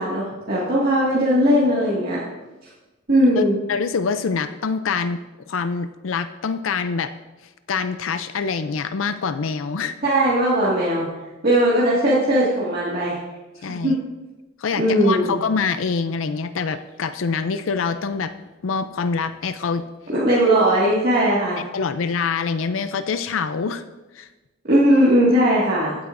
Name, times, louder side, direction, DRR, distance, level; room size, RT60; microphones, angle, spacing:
voice 1, 0.0-2.2 3.1-3.6 10.0-11.1 11.4-13.2 13.7-13.9 14.8-15.4 20.1-21.6 24.7-26.0, equal, 50° right, -8 dB, 2.0 m, -18 dB
voice 2, 3.3-5.2 5.5-7.1 7.7-9.9 13.6-14.0 14.6-18.3 18.6-19.8 21.7-23.8 24.1-24.3, left 5 dB, 75° left, 11 dB, 0.5 m, -25 dB
15.0 x 8.7 x 2.6 m, 1.1 s
head